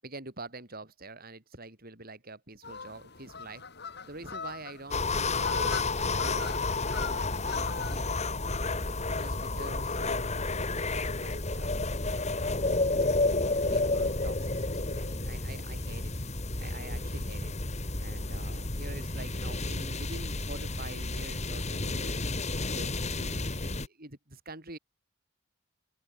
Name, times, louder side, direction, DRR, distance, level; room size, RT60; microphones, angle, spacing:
voice 1, 0.0-3.6 4.0-8.2 8.7-10.2 10.8-12.6 13.2-16.1 16.6-24.8, right 2 dB, 50° right, 7.4 m, -46 dB
sound 1, 2.6-8.0, left 5 dB, 55° left, 3.8 m, -41 dB
sound 2, 4.9-23.9, left 3 dB, 35° left, 2.4 m, -31 dB
open air
head